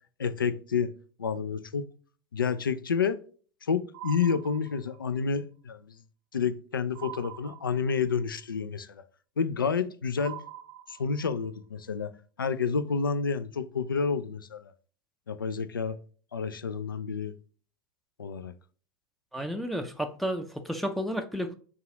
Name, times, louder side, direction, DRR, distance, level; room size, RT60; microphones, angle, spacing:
voice 1, 0.2-0.9 1.2-1.9 2.3-3.2 3.6-5.9 6.3-9.0 9.4-10.4 10.9-12.1 12.4-14.7 15.3-16.0 16.3-17.3 18.2-18.5, left 6 dB, 85° left, 0.4 m, -29 dB
sound 1, 3.9-5.2 6.9-8.2 10.2-11.4, right 12 dB, 60° right, 0.5 m, -44 dB
voice 2, 19.3-21.5, equal, ahead, 0.4 m, -32 dB
4.0 x 2.3 x 3.7 m
figure-of-eight pair, 85°, 11 cm